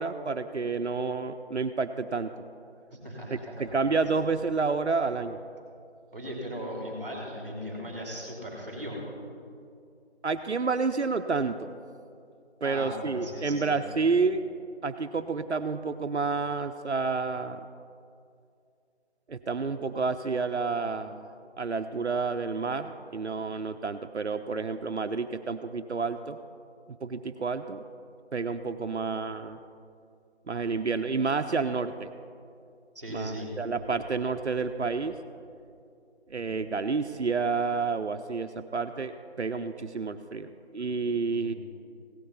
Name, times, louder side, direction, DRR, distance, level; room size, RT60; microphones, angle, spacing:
voice 1, 0.0-2.3 3.3-5.4 10.2-11.7 12.6-14.4 14.8-17.7 19.3-26.4 27.0-27.8 28.3-29.6 30.5-32.1 33.1-35.1 36.3-41.5, right 4 dB, 80° right, 8 dB, 0.7 m, -29 dB
voice 2, 2.9-3.9 6.1-9.0 12.6-13.9 32.9-33.5 41.3-41.6, equal, 15° right, -2 dB, 2.4 m, -38 dB
16.5 x 6.7 x 5.4 m, 2.4 s
figure-of-eight pair, 175°, 34 cm